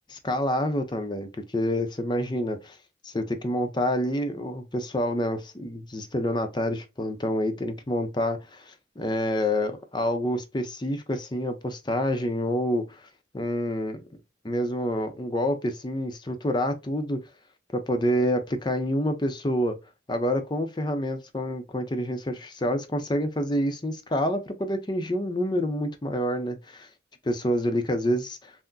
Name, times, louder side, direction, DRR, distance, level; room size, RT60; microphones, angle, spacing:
voice 1, 0.2-2.8 3.0-13.1 13.3-14.2 14.4-17.2 17.7-19.8 20.1-26.9 27.2-28.5, equal, 25° left, 0.6 m, -27 dB
5.8 x 2.1 x 2.6 m
head